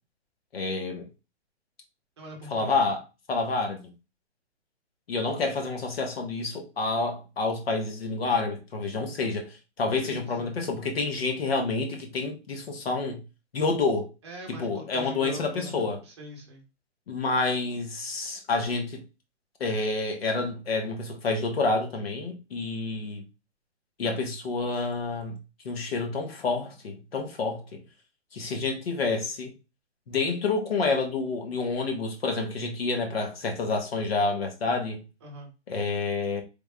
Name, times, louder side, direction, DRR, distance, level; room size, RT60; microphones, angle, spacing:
voice 1, 0.5-1.1 2.5-3.0 3.3-3.8 5.1-13.2 13.5-14.1 14.5-16.0 17.1-19.0 19.6-23.2 24.0-25.4 25.6-27.8 28.3-29.5 30.1-35.0 35.7-36.4, left 3 dB, 60° left, 1.1 m, -28 dB
voice 2, 2.2-2.8 10.0-10.5 14.2-16.6 35.2-35.5, equal, 25° right, 0.9 m, -43 dB
3.5 x 2.3 x 3.3 m
hypercardioid pair, 175°, 35 cm